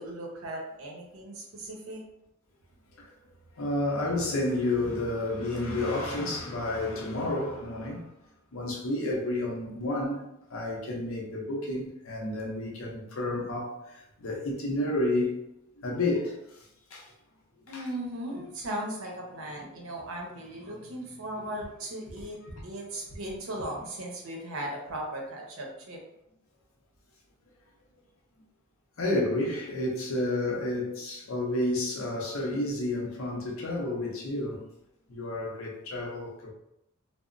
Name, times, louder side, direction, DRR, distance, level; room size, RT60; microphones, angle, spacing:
voice 1, 0.0-2.0 17.7-26.0, right 1 dB, 65° right, 0.7 m, -37 dB
voice 2, 3.6-8.1 8.5-15.4 15.8-17.1 17.7-17.8 29.0-34.7 35.1-36.5, left 2 dB, 65° left, 0.6 m, -31 dB
2.9 x 2.0 x 2.4 m
head